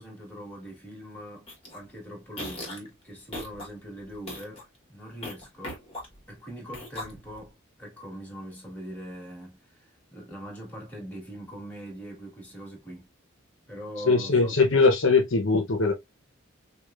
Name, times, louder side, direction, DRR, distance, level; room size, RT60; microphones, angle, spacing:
voice 1, 0.0-5.8 6.3-13.1 13.7-14.5, equal, 10° left, 1.6 m, -42 dB
sound 1, 1.5-1.8 2.3-2.9 3.3-3.7 4.1-4.6 5.2-6.3 6.7-7.5, left 1 dB, 25° left, 1.3 m, -38 dB
voice 2, 14.1-15.9, left 3 dB, 65° left, 0.8 m, -21 dB
4.8 x 2.4 x 2.4 m
head